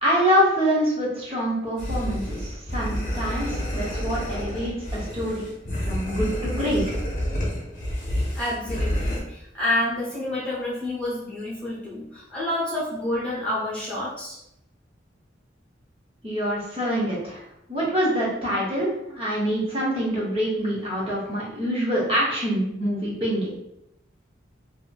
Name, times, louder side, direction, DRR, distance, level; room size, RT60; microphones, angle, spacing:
voice 1, 0.0-5.4 5.8-6.8 16.2-17.4 17.7-23.5, equal, 30° right, -6 dB, 0.7 m, -25 dB
sound 1, 1.8-9.2, equal, 40° left, 0.8 m, -29 dB
voice 2, 8.3-14.4, left 1 dB, 5° left, -9 dB, 0.8 m, -28 dB
2.7 x 2.5 x 2.3 m, 0.81 s
head